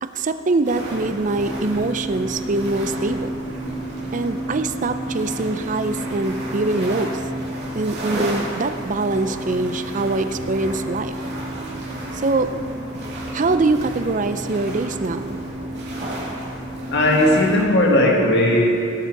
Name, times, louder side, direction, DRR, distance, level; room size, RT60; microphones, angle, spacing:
voice 1, 0.0-3.4 4.1-7.2 7.7-11.2 12.1-12.6 13.3-15.4, right 3 dB, 40° right, 10 dB, 0.5 m, -23 dB
sound 1, 0.6-17.6, right 1 dB, 55° right, 3.0 m, -30 dB
voice 2, 16.9-18.6, left 1 dB, 60° left, -1 dB, 1.8 m, -16 dB
17.5 x 7.4 x 4.7 m, 2.8 s
head